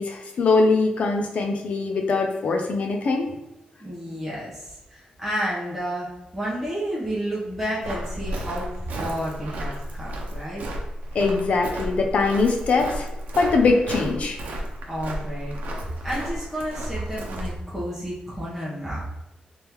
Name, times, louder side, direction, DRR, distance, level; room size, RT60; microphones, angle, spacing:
voice 1, 0.0-3.3 11.1-13.1 13.4-14.4, left 3 dB, 55° left, 3 dB, 0.5 m, -22 dB
voice 2, 3.8-6.1 6.3-8.7 9.0-10.7 14.9-15.6 16.0-19.0, equal, ahead, -8 dB, 0.9 m, -31 dB
Walk footsteps, 7.8-17.6, right 1 dB, 90° right, 0.7 m, -33 dB
3.6 x 3.4 x 3.0 m, 0.87 s
wide cardioid pair, 170°, 3 cm